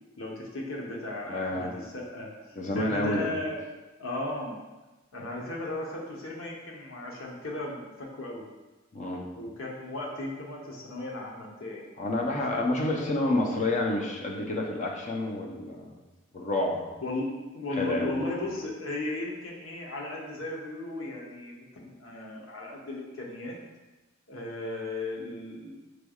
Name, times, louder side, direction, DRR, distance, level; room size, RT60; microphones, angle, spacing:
voice 1, 0.2-2.3 2.7-3.6 4.0-4.6 5.1-8.4 9.3-11.8 12.5-13.1 17.0-23.5 24.3-26.0, left 2 dB, 80° left, -2 dB, 0.9 m, -36 dB
voice 2, 1.3-1.7 2.6-3.3 8.9-9.2 12.0-15.9 16.3-16.8 17.8-18.3, left 2 dB, 40° left, 0 dB, 0.6 m, -29 dB
6.1 x 3.3 x 2.3 m, 1.1 s
head